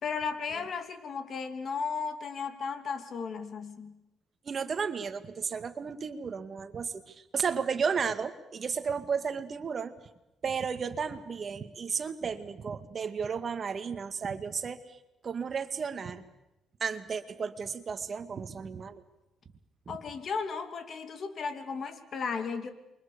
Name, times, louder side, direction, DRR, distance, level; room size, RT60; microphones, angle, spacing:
voice 1, 0.0-3.9 19.9-22.7, left 5 dB, 55° left, 9 dB, 2.8 m, -35 dB
voice 2, 4.5-9.9 10.4-16.2 16.8-19.0 19.9-20.0, right 6 dB, 45° right, 9 dB, 2.0 m, -33 dB
28.5 x 23.5 x 6.9 m, 0.92 s
cardioid pair, 90°, 0 cm